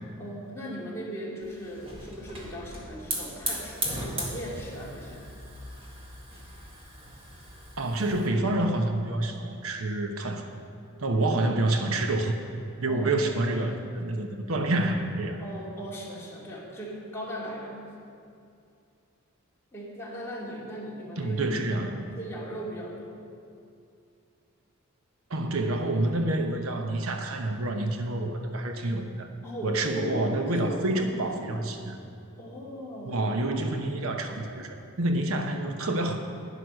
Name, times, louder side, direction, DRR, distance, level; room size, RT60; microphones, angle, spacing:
voice 1, 0.2-5.3 12.9-13.2 15.4-17.7 19.7-21.9 22.2-23.2 29.4-31.6 32.4-33.3, equal, 10° left, -6 dB, 2.6 m, -38 dB
Hiss / Fire, 1.4-8.3, right 1 dB, 25° right, 1.9 m, -37 dB
voice 2, 7.8-10.5 11.0-12.4 12.8-15.4 21.2-22.0 25.3-29.3 29.6-32.0 33.1-36.2, right 2 dB, 80° right, 5 dB, 1.0 m, -28 dB
11.0 x 10.0 x 6.3 m, 2.5 s
head